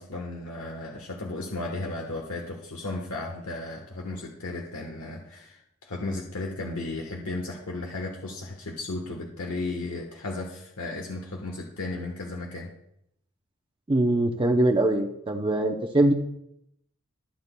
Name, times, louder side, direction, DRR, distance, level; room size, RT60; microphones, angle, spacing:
voice 1, 0.0-12.7, left 2 dB, 85° left, 0 dB, 1.3 m, -35 dB
voice 2, 13.9-16.1, right 1 dB, 25° right, 2 dB, 0.6 m, -22 dB
23.0 x 8.1 x 2.2 m, 0.78 s
head